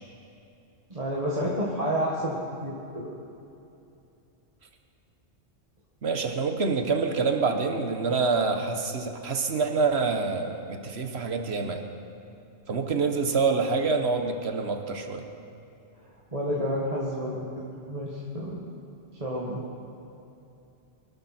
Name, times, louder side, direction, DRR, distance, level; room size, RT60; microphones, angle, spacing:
voice 1, 0.9-2.4 2.6-3.1 16.3-18.6 19.2-19.6, equal, 30° right, -6 dB, 2.0 m, -30 dB
voice 2, 6.0-11.8 12.7-15.3, right 4 dB, 65° right, 5 dB, 1.5 m, -26 dB
24.5 x 12.5 x 4.4 m, 2.7 s
omnidirectional pair, 1.2 m